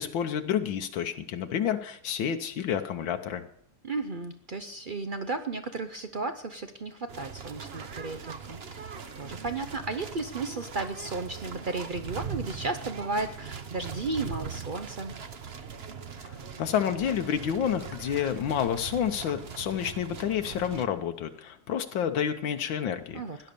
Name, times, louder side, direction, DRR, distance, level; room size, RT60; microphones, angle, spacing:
voice 1, 0.0-3.4 16.2-23.2, left 9 dB, 85° left, 7 dB, 1.6 m, -29 dB
voice 2, 3.8-15.1 23.1-23.4, right 3 dB, 70° right, 9 dB, 0.4 m, -34 dB
sound 1, 7.1-20.8, right 6 dB, 40° right, 1.0 m, -40 dB
17.0 x 11.0 x 6.8 m, 0.69 s
omnidirectional pair, 2.0 m